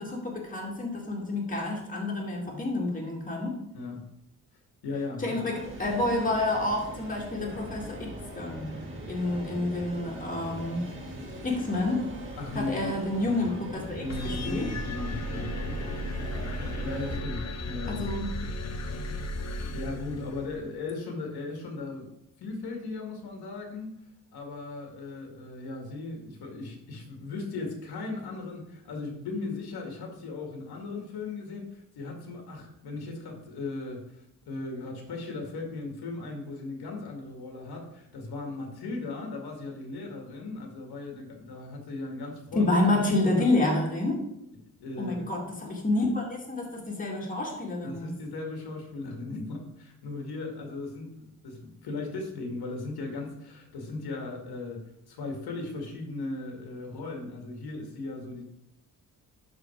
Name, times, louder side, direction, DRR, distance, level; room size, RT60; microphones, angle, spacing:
voice 1, 0.0-3.6 5.2-8.8 9.1-10.9 11.4-12.0 12.6-14.7 17.9-18.3 42.5-44.2 45.0-48.1, left 2 dB, 20° left, -1 dB, 1.9 m, -29 dB
voice 2, 4.8-5.4 12.4-12.9 13.2-13.6 14.0-15.8 16.8-18.1 19.7-22.1 22.4-23.9 24.3-42.7 44.8-45.2 47.8-54.8 55.1-58.4, left 3 dB, 85° left, 2 dB, 2.1 m, -37 dB
sound 1, 5.5-17.2, right 1 dB, 30° right, 1.9 m, -40 dB
sound 2, 14.1-20.7, left 1 dB, 45° left, 0.9 m, -35 dB
11.5 x 4.1 x 4.5 m, 0.81 s
cardioid pair, 140°, 37 cm